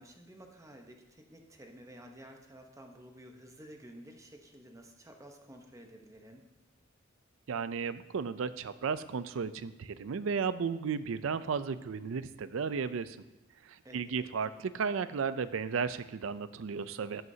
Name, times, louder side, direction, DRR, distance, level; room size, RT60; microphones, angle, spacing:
voice 1, 0.0-6.5 13.8-14.3, equal, 15° right, 3 dB, 0.9 m, -52 dB
voice 2, 7.5-13.2 13.6-17.2, right 5 dB, 75° right, 14 dB, 0.4 m, -34 dB
13.5 x 8.0 x 2.7 m, 1.0 s
head